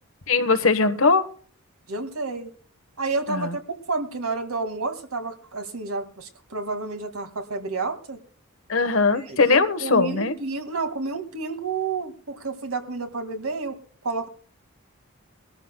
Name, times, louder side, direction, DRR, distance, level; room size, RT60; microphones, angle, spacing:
voice 1, 0.3-1.2 3.3-3.5 8.7-10.3, left 4 dB, 65° left, 10 dB, 1.2 m, -20 dB
voice 2, 1.9-2.5 3.0-8.2 9.1-14.3, right 3 dB, 80° right, 7 dB, 2.1 m, -30 dB
22.0 x 13.5 x 2.2 m, 0.43 s
head